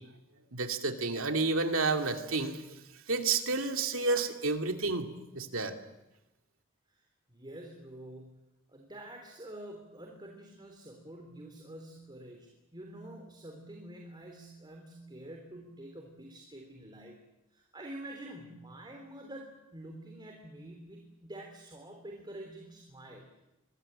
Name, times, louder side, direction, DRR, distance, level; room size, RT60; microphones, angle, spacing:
voice 1, 0.5-2.6 3.1-5.7, right 3 dB, 70° right, 5 dB, 2.7 m, -30 dB
voice 2, 6.9-8.3 8.7-17.2 17.5-23.4, right 1 dB, 20° right, 2 dB, 3.5 m, -47 dB
25.5 x 21.5 x 8.9 m, 0.94 s
head